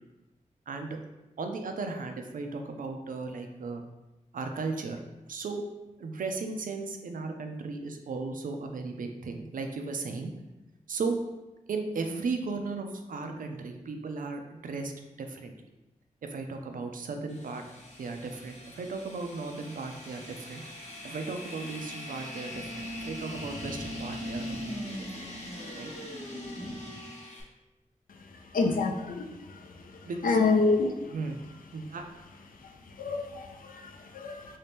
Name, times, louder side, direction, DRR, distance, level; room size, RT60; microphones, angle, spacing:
voice 1, 0.7-1.0 1.4-3.8 4.3-5.0 5.3-5.6 6.0-10.3 10.9-11.2 11.7-14.9 15.2-15.5 16.3-17.6 18.0-20.6 21.0-25.0 25.8-25.9 30.0-30.4 31.1-31.4 31.7-32.0, right 4 dB, 75° right, 5 dB, 0.4 m, -36 dB
sound 1, 17.3-27.4, left 1 dB, 50° left, 0.8 m, -40 dB
voice 2, 28.5-29.2 30.2-30.9 33.0-34.4, left 3 dB, 85° left, 3 dB, 0.4 m, -26 dB
3.3 x 2.7 x 3.4 m, 1.0 s
wide cardioid pair, 125°, 14 cm